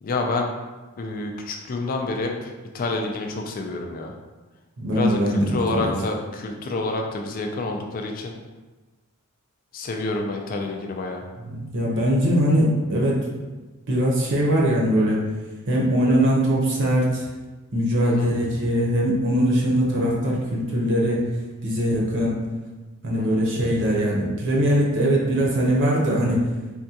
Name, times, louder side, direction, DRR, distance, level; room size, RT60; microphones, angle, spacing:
voice 1, 0.0-0.5 1.0-4.1 4.9-8.3 9.7-11.2 18.0-18.3 23.2-23.5, left 3 dB, 40° left, 2 dB, 0.3 m, -28 dB
voice 2, 4.8-5.9 11.4-13.2 13.9-15.2 15.7-17.3 17.7-21.3 21.6-22.4 23.0-26.5, equal, 60° right, -3 dB, 0.7 m, -21 dB
3.6 x 2.2 x 2.7 m, 1.2 s
head